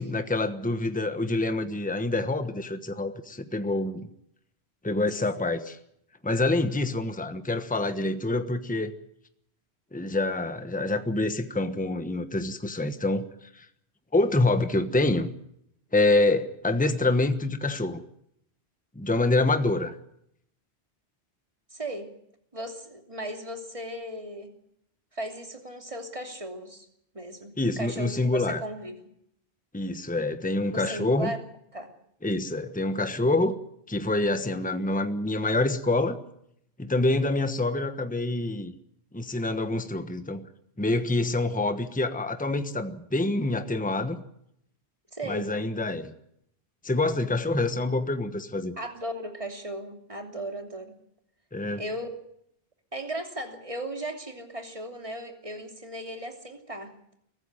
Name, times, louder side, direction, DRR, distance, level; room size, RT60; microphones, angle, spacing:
voice 1, 0.0-4.1 4.8-5.8 6.2-8.9 9.9-13.2 13.5-13.6 14.1-15.3 15.9-18.0 18.9-19.9 27.6-28.6 29.7-31.3 32.2-33.6 33.9-36.2 36.8-38.7 39.1-40.5 40.8-44.2 45.3-46.1 46.8-48.8 51.5-51.8, left 2 dB, 10° left, 9 dB, 1.2 m, -26 dB
voice 2, 21.7-22.1 22.5-24.5 25.1-26.9 27.1-29.0 30.7-31.4 31.7-31.9 45.1-45.5 48.8-50.9 51.8-52.1 52.9-56.9, right 1 dB, 30° right, 4 dB, 2.9 m, -36 dB
23.5 x 14.5 x 8.9 m, 0.74 s
omnidirectional pair, 1.1 m